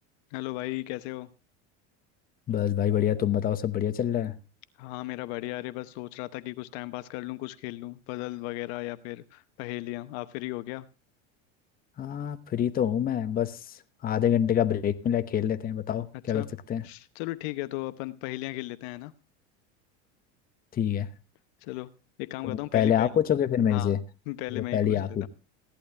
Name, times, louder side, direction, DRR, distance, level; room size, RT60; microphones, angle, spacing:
voice 1, 0.3-1.3 4.8-10.9 16.3-16.5 16.8-19.1 21.6-21.9 22.2-23.1 23.7-23.9 24.3-25.3, left 18 dB, 65° left, 1.0 m, -36 dB
voice 2, 2.5-4.4 12.0-16.8 20.7-21.1 22.4-24.0 24.5-25.3, left 10 dB, 25° left, 0.9 m, -26 dB
16.0 x 11.5 x 3.4 m
supercardioid pair, 130°, 34 cm